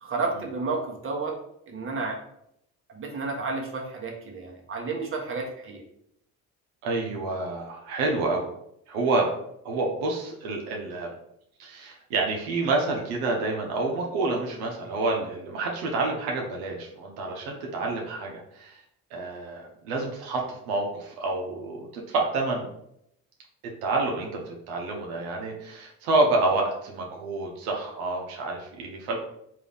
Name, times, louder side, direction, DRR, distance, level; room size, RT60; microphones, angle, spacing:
voice 1, 0.0-1.3 1.7-2.2 2.9-5.8, right 3 dB, 35° right, 0 dB, 1.1 m, -31 dB
voice 2, 6.8-8.4 8.9-9.3 9.6-11.1 11.6-18.8 19.1-22.7 23.8-29.2, right 3 dB, 85° right, 0 dB, 0.8 m, -28 dB
3.7 x 2.7 x 3.4 m, 0.75 s
supercardioid pair, 75°, 36 cm